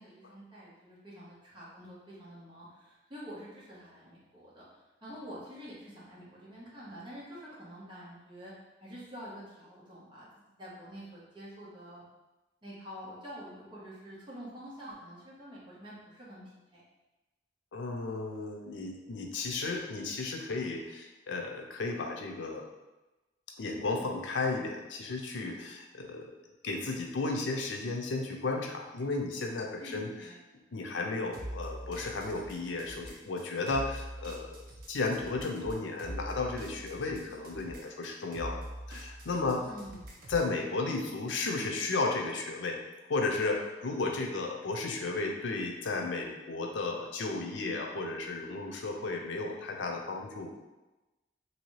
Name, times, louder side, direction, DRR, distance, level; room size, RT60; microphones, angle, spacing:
voice 1, 0.0-8.5 8.8-10.3 10.6-12.0 12.6-16.4 16.7-16.8 29.8-30.6 39.6-40.1, equal, 25° right, -7 dB, 1.0 m, -47 dB
voice 2, 17.7-22.6 23.6-26.3 26.6-30.1 30.7-34.6 34.9-39.6 40.3-42.8 43.1-50.6, left 3 dB, 85° left, 2 dB, 0.5 m, -34 dB
sound 1, 31.3-40.5, right 1 dB, 50° right, 0.6 m, -44 dB
3.1 x 2.7 x 3.1 m, 1.1 s
head